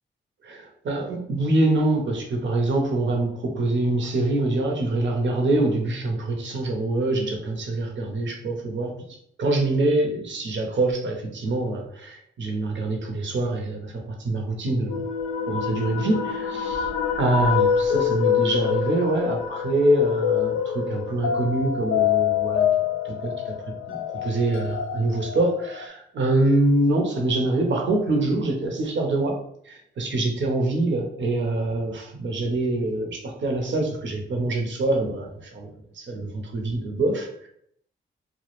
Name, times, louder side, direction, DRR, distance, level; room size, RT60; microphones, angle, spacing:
voice 1, 0.4-8.9 9.4-15.1 15.5-16.9 17.2-22.7 23.0-23.5 23.9-29.3 29.6-35.7 35.9-37.5, right 2 dB, 65° right, 1 dB, 0.7 m, -25 dB
sound 1, 14.9-25.9, left 8 dB, 75° left, 0.4 m, -25 dB
2.2 x 2.1 x 3.0 m, 0.70 s
cardioid pair, 60°, 21 cm